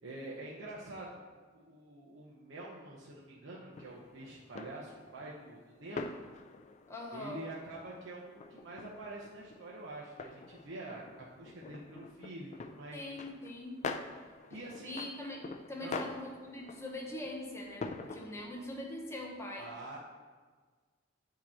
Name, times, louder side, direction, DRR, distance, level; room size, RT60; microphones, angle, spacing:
voice 1, 0.0-1.2 1.5-6.1 7.1-13.0 14.2-15.0 15.8-16.1 19.6-20.0, right 2 dB, 85° right, -5 dB, 0.8 m, -46 dB
sound 1, 3.7-18.5, left 4 dB, 35° left, 0.3 m, -46 dB
voice 2, 6.9-7.4 12.9-13.8 14.8-19.7, left 1 dB, 15° left, -1 dB, 0.9 m, -42 dB
8.6 x 3.0 x 4.3 m, 1.5 s
head